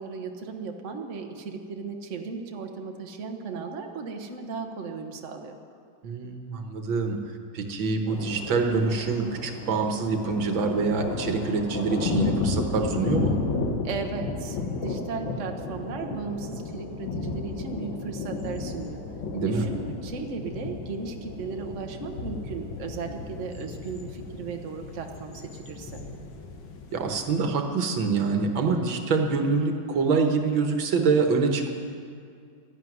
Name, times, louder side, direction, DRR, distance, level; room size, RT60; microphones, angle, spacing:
voice 1, 0.0-5.6 13.8-19.0 19.4-26.0, right 5 dB, 45° right, 3 dB, 1.4 m, -36 dB
voice 2, 6.0-7.2 7.5-13.4 19.3-19.6 26.9-31.7, right 4 dB, 85° right, 4 dB, 2.0 m, -25 dB
sound 1, 8.1-27.4, left 3 dB, 80° left, 2.2 m, -33 dB
13.5 x 11.0 x 9.4 m, 2.3 s
omnidirectional pair, 2.1 m